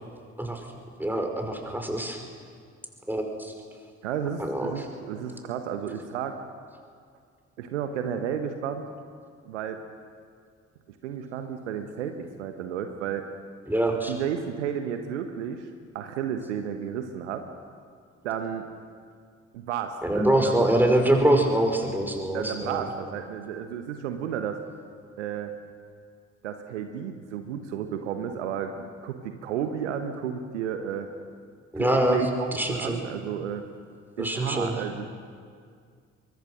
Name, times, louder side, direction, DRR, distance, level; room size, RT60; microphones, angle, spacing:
voice 1, 1.0-2.2 3.1-3.5 4.4-4.7 13.7-14.1 20.0-22.9 31.7-32.2 32.5-33.0 34.2-34.7, right 1 dB, 5° right, 3 dB, 5.3 m, -24 dB
voice 2, 4.0-6.4 7.6-8.9 9.4-9.8 11.0-13.3 14.1-15.7 15.9-17.4 18.2-18.7 19.5-20.7 22.3-24.6 25.2-25.5 26.4-31.1 31.8-33.6 34.2-35.1, right 8 dB, 75° right, 7 dB, 1.3 m, -32 dB
23.5 x 23.5 x 6.4 m, 2.1 s
figure-of-eight pair, 40°, 35 cm